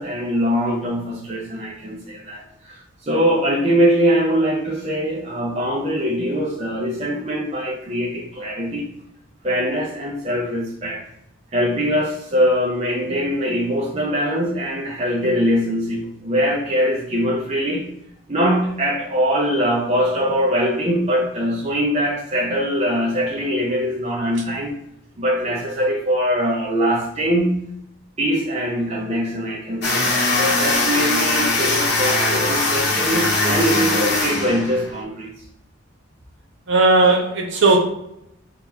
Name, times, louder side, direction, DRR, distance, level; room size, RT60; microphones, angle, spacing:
voice 1, 0.0-8.9 9.4-11.0 11.5-17.9 18.3-24.8 25.2-27.7 28.2-35.3, equal, 30° right, -3 dB, 0.5 m, -22 dB
sound 1, 29.8-35.0, left 2 dB, 55° left, 1.0 m, -21 dB
voice 2, 36.7-37.8, right 3 dB, 60° right, 1 dB, 0.9 m, -16 dB
3.5 x 2.9 x 3.9 m, 0.80 s
head